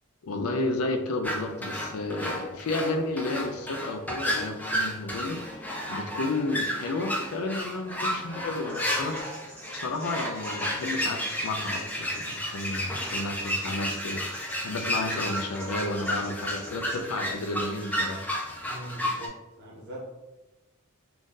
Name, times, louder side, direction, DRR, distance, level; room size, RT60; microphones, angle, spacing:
voice 1, 0.2-5.6 5.9-9.2 9.7-18.2, left 2 dB, 90° left, 5 dB, 0.4 m, -32 dB
sound 1, 1.2-19.3, equal, 10° left, 0.3 m, -32 dB
sound 2, 8.7-17.0, equal, 10° right, 1.1 m, -48 dB
voice 2, 18.6-20.1, right 1 dB, 50° right, -5 dB, 1.1 m, -41 dB
2.6 x 2.5 x 3.6 m, 1.0 s
head